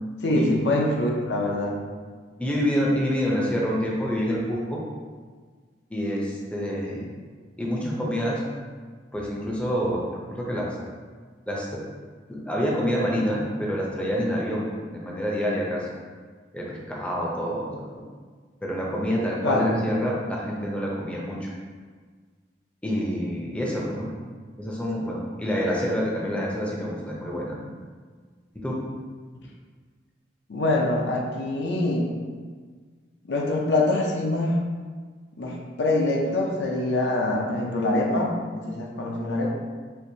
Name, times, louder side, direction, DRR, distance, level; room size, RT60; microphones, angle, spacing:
voice 1, 0.2-1.8 19.4-19.8 20.1-20.2 30.5-32.1 33.2-34.6 35.4-39.5, left 2 dB, 70° left, -1 dB, 0.5 m, -24 dB
voice 2, 2.4-4.8 5.9-7.1 7.6-8.4 9.1-10.0 10.3-10.8 11.5-11.8 12.3-15.9 16.5-17.7 18.6-21.5 22.8-24.1 24.6-27.6 28.5-28.8, equal, 5° left, -4 dB, 0.5 m, -27 dB
4.5 x 2.6 x 2.7 m, 1.5 s
head